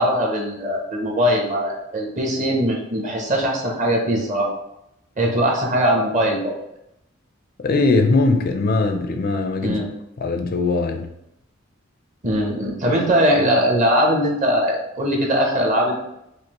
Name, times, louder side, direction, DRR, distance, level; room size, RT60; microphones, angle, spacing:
voice 1, 0.0-4.5 5.2-6.5 9.6-9.9 12.2-16.0, equal, 40° right, -1 dB, 0.9 m, -20 dB
voice 2, 7.6-9.8 10.2-11.1, left 3 dB, 50° left, 5 dB, 0.4 m, -20 dB
5.0 x 2.1 x 2.9 m, 0.82 s
head